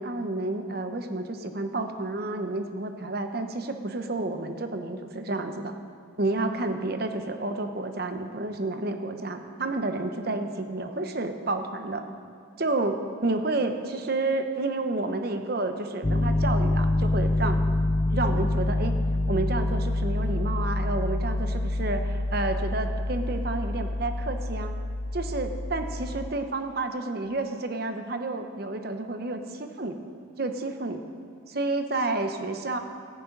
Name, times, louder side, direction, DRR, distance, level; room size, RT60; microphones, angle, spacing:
voice 1, 0.0-5.7 6.2-12.0 12.6-17.6 18.1-18.9 19.3-24.7 25.1-30.0 30.4-31.0 31.5-32.8, right 2 dB, 50° right, 7 dB, 0.8 m, -30 dB
Piano, 16.0-26.3, left 2 dB, 15° left, 0.3 m, -27 dB
14.0 x 9.6 x 5.3 m, 2.5 s
head